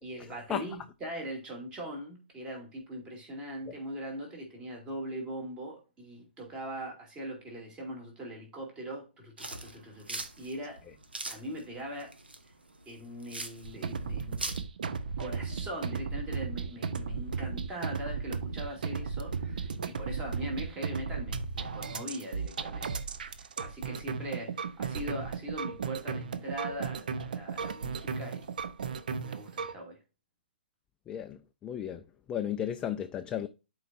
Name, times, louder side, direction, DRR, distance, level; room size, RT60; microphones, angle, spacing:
voice 1, 0.0-10.8 11.3-12.2 12.9-14.6 15.2-22.9 23.2-28.4 29.2-30.0, right 1 dB, 15° right, 2.5 m, -41 dB
sound 1, 9.4-14.6, right 2 dB, 75° right, 1.2 m, -41 dB
sound 2, 13.6-29.7, right 5 dB, 55° right, 0.7 m, -35 dB
voice 2, 31.1-32.0 32.3-33.5, left 10 dB, 15° left, 0.4 m, -34 dB
11.5 x 4.7 x 2.5 m
figure-of-eight pair, 125°, 5 cm